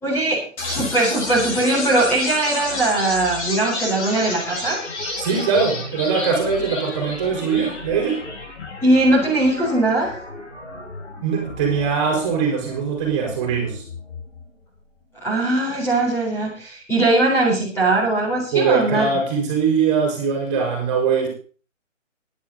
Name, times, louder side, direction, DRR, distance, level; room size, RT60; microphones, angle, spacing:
voice 1, 0.0-4.8 8.8-10.2 15.2-19.1, right 2 dB, 5° left, -5 dB, 4.0 m, -20 dB
sound 1, 0.6-14.6, left 2 dB, 60° left, 7.0 m, -32 dB
voice 2, 5.2-8.2 11.2-13.8 18.5-21.3, right 5 dB, 25° right, 1 dB, 4.5 m, -21 dB
17.0 x 10.5 x 4.0 m, 0.40 s
hypercardioid pair, 165°, 38 cm